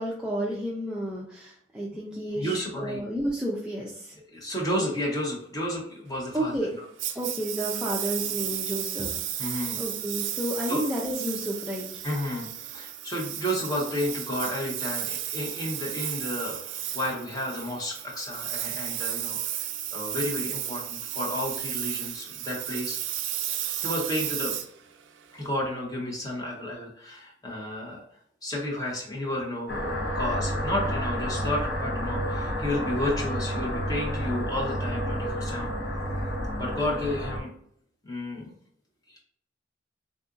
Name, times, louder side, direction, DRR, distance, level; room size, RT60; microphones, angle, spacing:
voice 1, 0.0-4.1 6.3-6.7 7.2-12.0, equal, 5° right, -5 dB, 0.3 m, -31 dB
voice 2, 2.3-3.0 4.3-6.7 9.4-9.8 10.7-10.8 12.0-23.0 23.8-24.6 25.3-28.0 28.4-35.7 36.6-37.5 38.0-38.5 39.1-39.2, left 1 dB, 20° left, -3 dB, 0.8 m, -32 dB
Engine, 7.0-25.5, right 11 dB, 80° right, 0.3 m, -33 dB
sound 1, 29.7-37.4, equal, 65° left, 0.8 m, -30 dB
3.6 x 2.5 x 2.4 m, 0.67 s
head